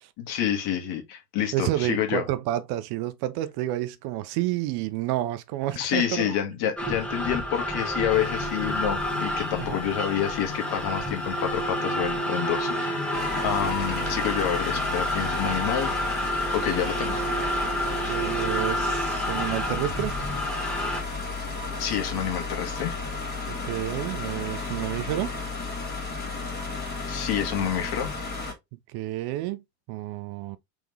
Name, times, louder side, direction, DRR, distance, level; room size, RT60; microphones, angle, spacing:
voice 1, 0.2-2.2 5.8-15.9 16.5-17.2 18.0-18.2 21.8-22.9 27.1-28.1, left 9 dB, 50° left, 1.6 m, -28 dB
voice 2, 1.5-6.4 9.6-9.8 13.6-13.7 18.0-20.1 23.5-25.4 28.9-30.6, right 14 dB, 50° right, 0.6 m, -30 dB
sound 1, 6.8-21.0, equal, ahead, 1.1 m, -29 dB
sound 2, 8.1-15.6, left 11 dB, 75° left, 0.9 m, -39 dB
sound 3, 13.1-28.5, left 3 dB, 20° left, 2.0 m, -33 dB
3.6 x 3.5 x 3.2 m
hypercardioid pair, 95°, 49 cm